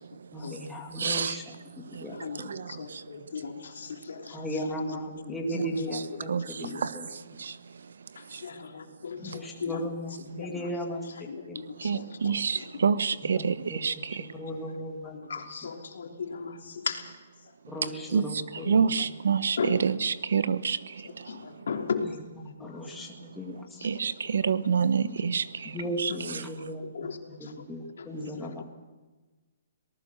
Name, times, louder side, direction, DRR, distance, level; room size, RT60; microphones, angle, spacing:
voice 1, 0.3-2.5 4.3-6.3 6.6-7.1 9.2-11.6 13.2-13.8 14.3-15.2 17.7-19.1 22.4-23.9 25.6-27.1 27.4-28.6, equal, 5° left, -1 dB, 1.8 m, -36 dB
voice 2, 1.0-1.4 2.5-2.6 5.9-6.0 6.3-6.4 6.8-6.9 11.8-13.6 13.8-13.9 18.1-18.2 18.7-20.8 23.8-25.4 26.0-26.1, right 6 dB, 70° right, 15 dB, 1.1 m, -26 dB
voice 3, 2.1-6.8 8.1-9.9 10.3-12.8 13.4-13.5 15.0-17.5 17.9-18.0 18.6-18.8 19.6-19.8 21.0-22.2 22.4-23.1 23.8-23.9 25.2-25.3 26.1-26.2 26.6-27.7 28.0-28.1 28.3-28.6, left 5 dB, 70° left, 4 dB, 3.2 m, -38 dB
25.0 x 19.0 x 6.6 m, 1.2 s
hypercardioid pair, 180°, 0 cm